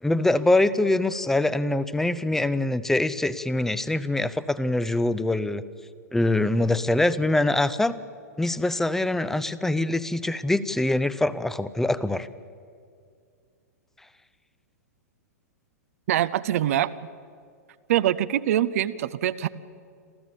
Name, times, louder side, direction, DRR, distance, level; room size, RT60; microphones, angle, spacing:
voice 1, 0.0-5.6 6.1-8.0 8.4-12.3, left 2 dB, 5° left, 16 dB, 0.7 m, -24 dB
voice 2, 16.1-16.9 17.9-19.5, right 12 dB, 60° right, 14 dB, 0.6 m, -24 dB
27.0 x 14.0 x 7.1 m, 2.3 s
hypercardioid pair, 110°, 9 cm